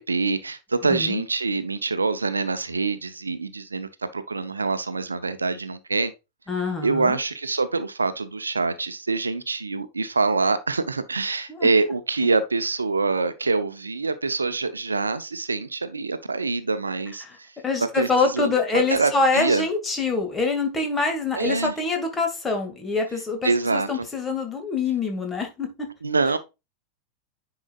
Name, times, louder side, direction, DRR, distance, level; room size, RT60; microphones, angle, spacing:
voice 1, 0.0-6.1 6.8-17.5 18.0-19.6 21.3-21.7 23.4-24.1 26.0-26.4, right 3 dB, 75° right, 0.7 m, -25 dB
voice 2, 0.9-1.2 6.5-7.2 11.5-11.7 17.2-17.4 17.6-25.9, left 3 dB, 15° left, 2.1 m, -25 dB
9.8 x 4.9 x 2.4 m
figure-of-eight pair, 90°, 0 cm